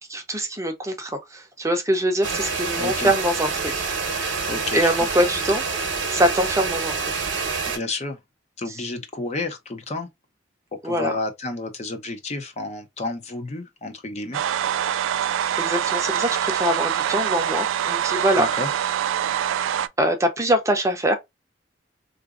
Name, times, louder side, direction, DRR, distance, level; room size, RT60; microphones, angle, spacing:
voice 1, 0.1-4.4 4.7-5.6 6.1-7.1 8.7-8.8 10.8-11.1 15.2-18.5 20.0-21.2, right 1 dB, 15° right, 0.6 m, -24 dB
sound 1, 2.2-7.8, right 4 dB, 70° right, 0.8 m, -27 dB
voice 2, 2.8-3.1 4.5-4.9 7.7-8.2 8.6-10.1 10.8-14.4 18.4-18.7, left 3 dB, 35° left, 0.6 m, -30 dB
sound 2, 14.3-19.9, right 10 dB, 85° right, 0.3 m, -24 dB
3.7 x 2.6 x 2.3 m
head